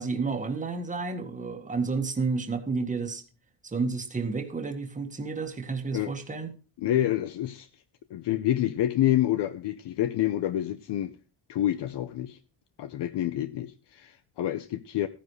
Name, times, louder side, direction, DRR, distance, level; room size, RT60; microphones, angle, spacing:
voice 1, 0.0-3.2 3.6-6.5, right 4 dB, 15° right, 1.7 m, -31 dB
voice 2, 6.8-7.7 8.1-11.2 11.5-12.4 12.8-15.1, left 12 dB, 70° left, 0.8 m, -28 dB
14.5 x 10.0 x 3.2 m
cardioid pair, 175°, 44 cm